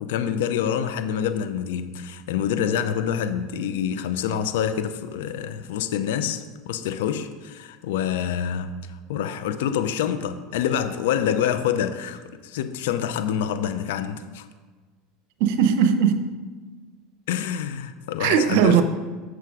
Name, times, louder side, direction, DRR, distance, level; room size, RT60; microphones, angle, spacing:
voice 1, 0.0-8.8 9.1-14.5 17.3-18.8, left 9 dB, 80° left, 0.5 m, -26 dB
voice 2, 15.4-16.2 18.2-18.8, right 8 dB, 70° right, 0.8 m, -18 dB
7.8 x 6.6 x 4.8 m
supercardioid pair, 110°, 0 cm